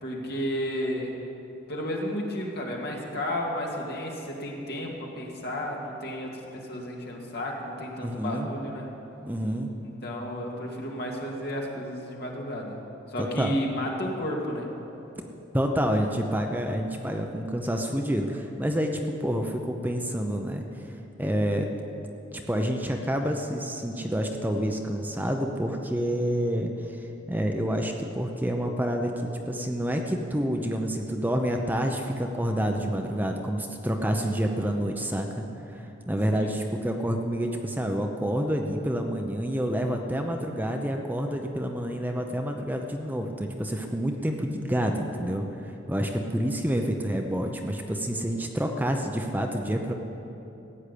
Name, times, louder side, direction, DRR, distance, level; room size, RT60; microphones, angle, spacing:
voice 1, 0.0-1.1 1.7-8.9 9.8-12.8 13.1-14.7 36.3-36.6, equal, 55° left, -1 dB, 2.4 m, -32 dB
voice 2, 8.0-8.5 9.2-9.7 13.2-13.6 15.5-20.6 21.2-21.7 22.5-27.0 27.3-35.5 35.7-49.9, equal, 10° right, 3 dB, 0.8 m, -28 dB
15.5 x 9.3 x 8.5 m, 3.0 s
head